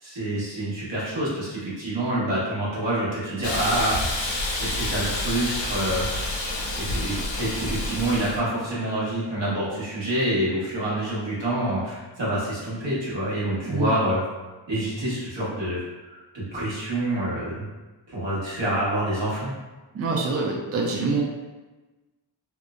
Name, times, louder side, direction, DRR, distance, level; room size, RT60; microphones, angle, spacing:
voice 1, 0.0-4.3 4.6-6.1 6.7-14.2 14.7-17.7 18.1-19.5, right 1 dB, 80° right, -8 dB, 1.2 m, -27 dB
Hiss, 3.4-8.4, left 1 dB, 80° left, 0.7 m, -28 dB
voice 2, 19.9-21.2, right 3 dB, 35° right, -1 dB, 0.4 m, -25 dB
2.9 x 2.1 x 2.4 m, 1.2 s
wide cardioid pair, 80°, 44 cm